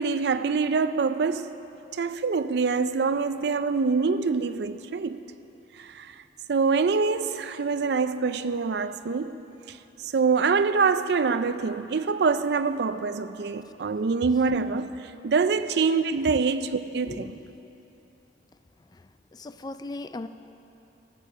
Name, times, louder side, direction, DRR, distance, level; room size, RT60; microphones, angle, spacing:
voice 1, 0.0-1.5 1.9-5.2 5.8-6.1 6.5-9.4 9.7-9.8 10.0-17.3, right 4 dB, 65° right, 0.4 m, -25 dB
voice 2, 17.0-17.3 18.9-19.0 19.3-20.3, left 2 dB, 20° left, 0.3 m, -37 dB
14.0 x 8.6 x 6.1 m
head